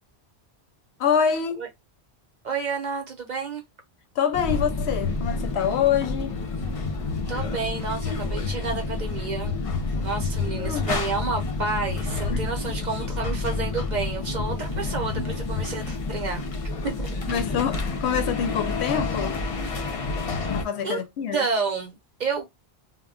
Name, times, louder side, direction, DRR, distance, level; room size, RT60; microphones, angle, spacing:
voice 1, 1.0-1.7 4.2-6.4 10.6-10.9 12.3-12.5 17.3-19.4 20.5-21.4, left 8 dB, 85° left, 0.9 m, -25 dB
voice 2, 2.4-3.6 7.3-9.5 10.0-16.5 16.8-17.5 20.8-21.0 21.3-22.4, right 4 dB, 50° right, 0.7 m, -30 dB
sound 1, 4.3-20.6, left 3 dB, 45° left, 0.4 m, -29 dB
2.2 x 2.1 x 3.6 m
omnidirectional pair, 1.1 m